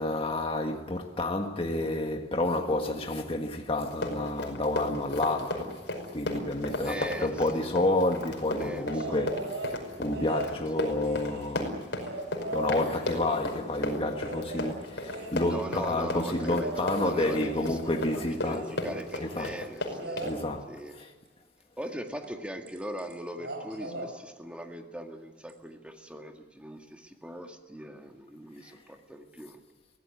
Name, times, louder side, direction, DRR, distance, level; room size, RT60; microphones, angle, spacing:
voice 1, 0.0-5.8 6.1-9.4 10.0-11.7 12.5-18.6 19.2-19.5 20.2-21.1, left 2 dB, 35° left, 1.7 m, -29 dB
Run, 3.9-20.3, left 2 dB, 70° left, 5.4 m, -34 dB
voice 2, 6.8-7.8 8.6-9.2 10.4-10.5 15.4-20.3 20.7-21.0 21.8-29.6, equal, 5° right, 2.0 m, -40 dB
sound 1, 8.9-9.8 10.1-13.7 14.2-19.0 19.9-20.4 22.2-22.4 22.7-23.1 23.4-24.1 25.5-25.6, right 2 dB, 70° right, 5.9 m, -40 dB
24.0 x 17.0 x 9.7 m
head